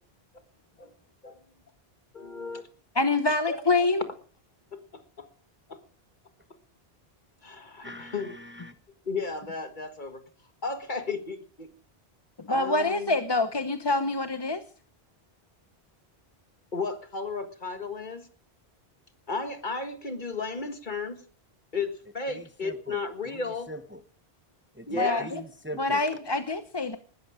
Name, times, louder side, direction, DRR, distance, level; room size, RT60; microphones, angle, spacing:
voice 1, 2.1-2.7 3.5-3.6 4.7-5.3 5.7-5.8 7.4-8.4 9.1-10.2 10.6-11.7 12.5-13.2 16.7-18.3 19.3-21.2 21.7-23.7 24.9-25.3, left 4 dB, 50° left, 8 dB, 1.8 m, -34 dB
voice 2, 2.9-4.0 12.4-14.6 25.0-25.4 25.8-27.0, left 3 dB, 25° left, 9 dB, 0.8 m, -26 dB
voice 3, 7.8-8.7 22.3-23.4 23.7-24.0 24.7-26.0, equal, 10° right, 10 dB, 1.0 m, -42 dB
20.0 x 13.0 x 5.0 m, 0.42 s
omnidirectional pair, 1.1 m